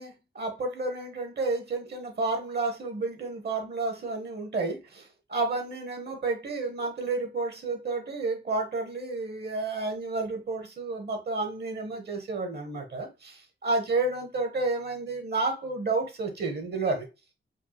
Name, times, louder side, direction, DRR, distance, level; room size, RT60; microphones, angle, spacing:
voice 1, 0.0-17.1, right 3 dB, 55° right, 1.0 m, -31 dB
5.1 x 2.4 x 2.8 m
wide cardioid pair, 140°, 20 cm